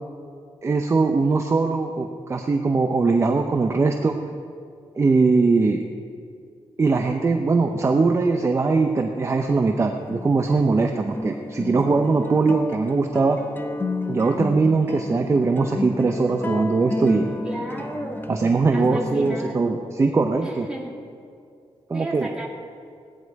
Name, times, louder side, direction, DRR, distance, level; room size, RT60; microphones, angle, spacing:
voice 1, 0.6-4.2 5.0-5.8 6.8-13.4 14.1-17.3 18.3-20.7 21.9-22.3, right 4 dB, 30° right, 4 dB, 0.7 m, -21 dB
sound 1, 9.9-19.6, left 2 dB, 20° left, 0.9 m, -32 dB
voice 2, 17.4-18.3 18.7-19.6 20.4-21.0 21.9-22.5, right 1 dB, 10° right, -3 dB, 2.2 m, -33 dB
17.0 x 10.0 x 4.7 m, 2.4 s
wide cardioid pair, 130°, 10 cm